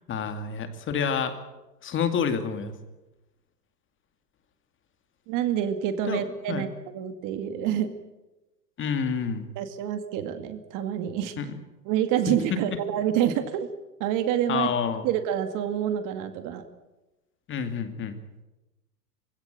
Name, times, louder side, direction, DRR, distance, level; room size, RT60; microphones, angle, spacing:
voice 1, 0.1-1.4 1.8-2.7 6.1-6.7 8.8-9.5 11.4-11.5 12.3-12.4 14.5-15.1 17.5-18.2, left 6 dB, 25° left, 8 dB, 2.4 m, -28 dB
voice 2, 5.3-6.7 6.9-7.9 9.6-11.4 11.9-13.7 14.0-14.7 15.0-16.6, right 10 dB, 40° right, 9 dB, 2.3 m, -27 dB
25.0 x 16.5 x 9.1 m, 1.1 s
hypercardioid pair, 125°, 48 cm